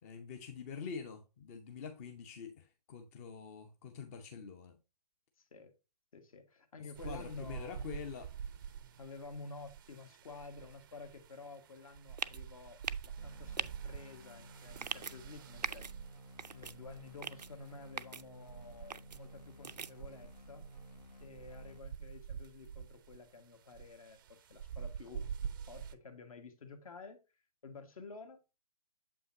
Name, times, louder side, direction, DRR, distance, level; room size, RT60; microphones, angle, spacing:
voice 1, 0.0-4.7 7.0-8.3, left 6 dB, 25° left, 0.5 m, -45 dB
voice 2, 6.1-7.8 9.0-15.8 16.5-20.6 21.2-25.3 25.7-27.2 27.6-28.4, left 4 dB, 55° left, 1.5 m, -51 dB
sound 1, 6.9-26.0, right 7 dB, 30° right, 0.4 m, -47 dB
sound 2, 12.2-12.4 12.8-13.1 13.6-13.7 14.8-15.1 15.6-15.9 16.4-16.7 17.2-17.5 18.0-18.2 18.9-19.2 19.6-19.9, right 6 dB, 85° right, 0.4 m, -39 dB
sound 3, 13.2-21.8, equal, 75° left, 1.1 m, -55 dB
7.4 x 5.5 x 2.6 m
figure-of-eight pair, 135°, 21 cm